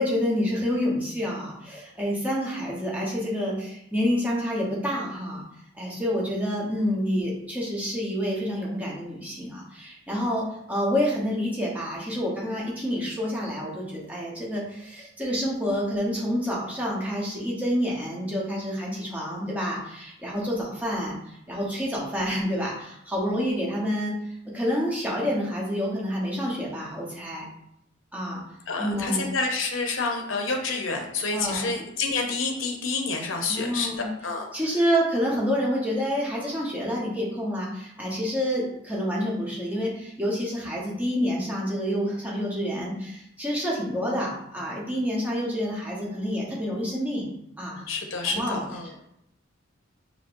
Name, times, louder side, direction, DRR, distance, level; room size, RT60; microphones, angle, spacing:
voice 1, 0.0-5.4 5.8-24.1 24.5-27.5 28.1-28.4 28.8-29.2 31.3-31.7 33.5-34.1 34.5-47.3 47.6-47.8 48.2-48.6, equal, 10° right, -4 dB, 0.9 m, -28 dB
voice 2, 28.7-33.9 34.2-34.4 47.9-48.9, left 3 dB, 75° left, 2 dB, 0.7 m, -28 dB
5.1 x 3.0 x 2.5 m, 0.77 s
head